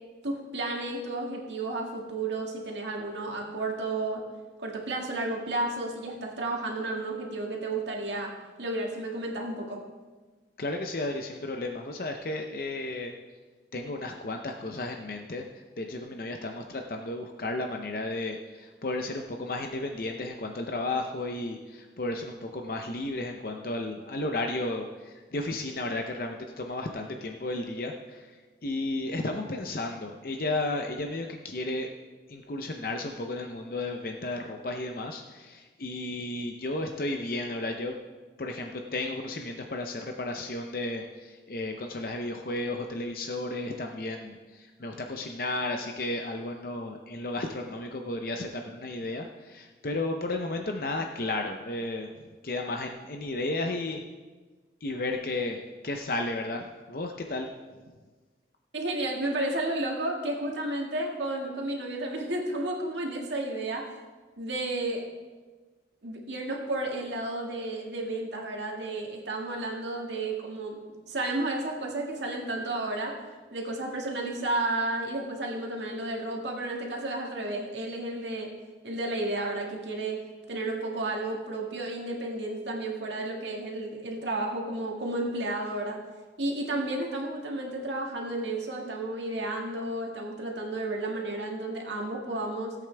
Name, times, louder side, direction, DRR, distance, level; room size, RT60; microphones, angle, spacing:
voice 1, 0.2-4.2 4.6-8.3 8.6-9.8 58.7-63.9 64.4-65.0 66.0-70.8 71.1-73.2 73.5-78.5 78.8-80.2 80.5-86.0 86.4-92.8, right 2 dB, 85° right, -1 dB, 1.9 m, -32 dB
voice 2, 10.6-13.1 13.7-28.4 28.6-31.9 32.3-38.0 38.4-52.1 52.4-54.0 54.8-57.5, left 2 dB, 50° left, 3 dB, 0.6 m, -33 dB
16.5 x 8.4 x 3.4 m, 1.3 s
head